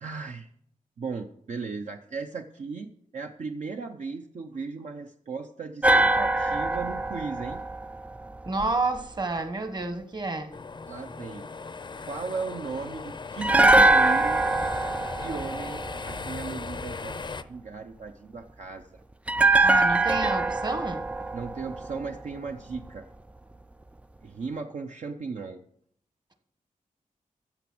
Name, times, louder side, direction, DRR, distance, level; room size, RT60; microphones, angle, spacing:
voice 1, 0.0-0.5 1.0-7.6 10.9-11.5 12.0-14.5 15.2-19.0 21.3-23.0 24.2-25.6, right 4 dB, 55° right, 0.8 m, -36 dB
sound 1, 5.8-9.0 13.4-16.6 19.3-22.5 22.8-22.9, right 2 dB, 10° right, 0.4 m, -23 dB
voice 2, 8.4-10.5 19.6-21.0, right 3 dB, 30° right, 1.3 m, -29 dB
sound 2, 10.5-17.4, left 4 dB, 35° left, 0.6 m, -38 dB
14.5 x 7.0 x 6.1 m
wide cardioid pair, 135°, 14 cm